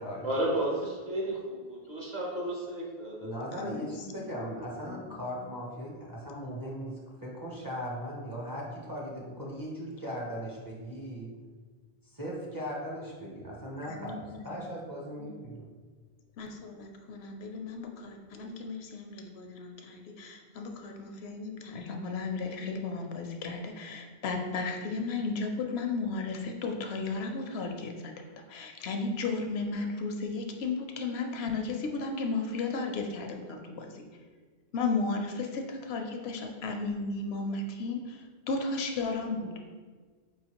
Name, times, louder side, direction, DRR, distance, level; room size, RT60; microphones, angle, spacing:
voice 1, 0.2-3.3, right 1 dB, 45° right, -3 dB, 1.0 m, -32 dB
voice 2, 3.2-11.4 12.0-15.7, equal, 25° right, -5 dB, 0.6 m, -38 dB
voice 3, 4.1-4.5 4.8-5.3 13.8-14.5 15.2-15.4 16.4-34.1 34.7-39.5, left 3 dB, 80° left, 3 dB, 0.8 m, -34 dB
4.6 x 3.1 x 2.9 m, 1.5 s
omnidirectional pair, 1.1 m